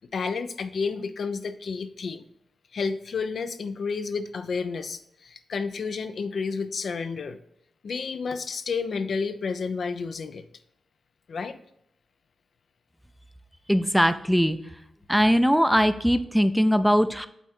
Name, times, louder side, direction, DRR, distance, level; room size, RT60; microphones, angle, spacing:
voice 1, 0.1-2.2 2.7-7.4 7.8-10.4 11.3-11.6, left 5 dB, 70° left, 9 dB, 0.6 m, -31 dB
voice 2, 13.7-14.6 15.1-17.3, equal, ahead, 11 dB, 0.5 m, -21 dB
8.0 x 3.6 x 4.3 m, 0.76 s
cardioid pair, 60°, 0 cm